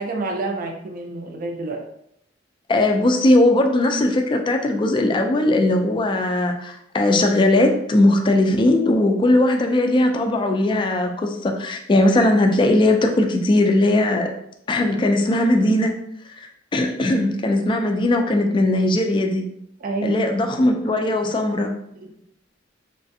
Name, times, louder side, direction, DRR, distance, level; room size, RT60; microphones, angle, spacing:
voice 1, 0.0-1.8 19.8-20.3 22.0-22.2, right 3 dB, 45° right, 3 dB, 0.4 m, -28 dB
voice 2, 2.7-14.3 14.7-15.9 16.4-19.4 20.0-21.7, left 1 dB, 25° left, 3 dB, 0.3 m, -19 dB
3.3 x 2.4 x 2.6 m, 0.75 s
head